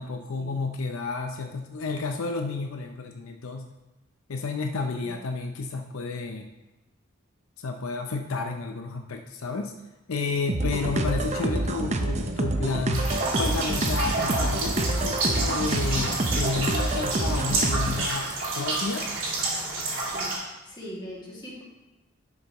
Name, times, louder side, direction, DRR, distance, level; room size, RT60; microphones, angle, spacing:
voice 1, 0.0-3.7 4.3-6.5 7.6-9.7 10.1-18.3 18.6-19.1, left 3 dB, 75° left, 4 dB, 0.6 m, -31 dB
sound 1, 10.5-18.1, right 1 dB, 35° right, 0.6 m, -27 dB
sound 2, 12.9-20.3, right 2 dB, 65° right, 3.1 m, -29 dB
voice 2, 20.0-20.4 20.6-21.6, equal, 20° left, -5 dB, 2.2 m, -41 dB
11.0 x 6.6 x 3.0 m, 1.0 s
head